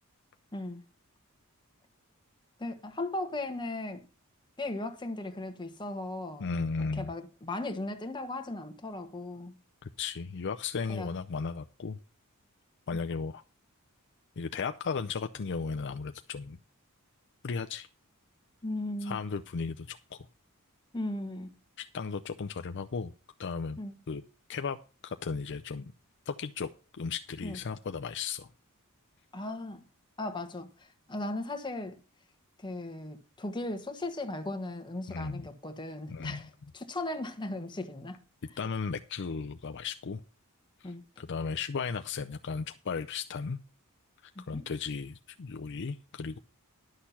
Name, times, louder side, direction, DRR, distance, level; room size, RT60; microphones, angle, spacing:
voice 1, 0.5-0.8 2.6-4.1 4.6-6.5 6.9-9.5 10.9-11.1 12.9-13.0 18.6-19.2 20.9-21.5 23.8-23.9 27.4-27.6 29.3-29.9 30.2-32.0 32.6-38.2 40.8-41.0 44.3-44.7, left 2 dB, 20° left, 1.4 m, -37 dB
voice 2, 6.4-7.1 9.8-12.0 12.9-13.4 14.4-16.6 17.4-17.9 19.0-20.2 21.8-23.1 23.4-23.8 24.1-24.2 24.5-24.8 25.0-25.9 26.3-26.7 27.0-28.5 35.1-35.4 36.1-36.4 38.6-40.2 40.8-40.9 41.2-43.6 44.5-46.4, left 5 dB, 55° left, 0.5 m, -35 dB
11.5 x 6.6 x 5.7 m
head